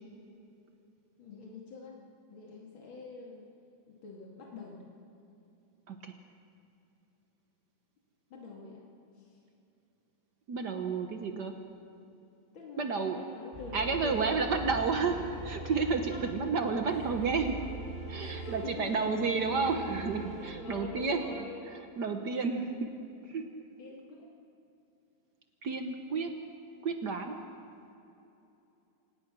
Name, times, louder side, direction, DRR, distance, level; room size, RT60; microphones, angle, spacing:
voice 1, 1.2-2.0 2.3-3.5 3.9-4.9 8.3-8.9 9.2-9.4 12.5-14.9 16.0-16.3 16.9-17.4 18.1-19.0 20.4-21.8 23.8-24.3, left 3 dB, 80° left, -2 dB, 3.0 m, -45 dB
voice 2, 10.5-11.5 12.8-13.2 13.7-17.5 18.1-21.2 21.7-22.9 23.3-23.5 25.6-26.3 26.8-27.3, right 4 dB, 60° right, 5 dB, 1.6 m, -31 dB
sound 1, 13.5-20.5, right 2 dB, 15° left, 7.2 m, -42 dB
26.0 x 19.0 x 6.2 m, 2.8 s
omnidirectional pair, 2.1 m